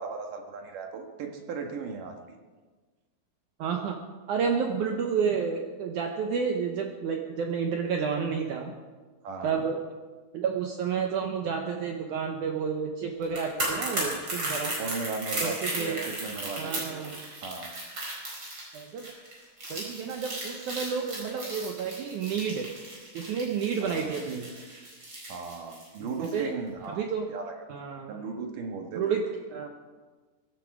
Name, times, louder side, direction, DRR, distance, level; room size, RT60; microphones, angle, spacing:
voice 1, 0.0-2.2 9.2-9.6 14.7-17.1 17.4-17.8 23.8-24.2 25.3-27.5 28.1-29.2, right 4 dB, 60° right, 3 dB, 2.7 m, -37 dB
voice 2, 3.6-4.0 4.3-8.7 9.4-9.8 10.3-14.8 15.4-16.0 16.6-17.2 18.7-19.1 19.7-22.7 23.1-24.5 26.2-26.5 26.9-27.3 27.7-28.2 29.0-29.7, right 6 dB, 80° right, 3 dB, 1.8 m, -30 dB
sound 1, 13.2-26.4 26.7-26.8, right 1 dB, 30° right, 4.9 m, -36 dB
23.0 x 11.5 x 4.9 m, 1.4 s
omnidirectional pair, 4.8 m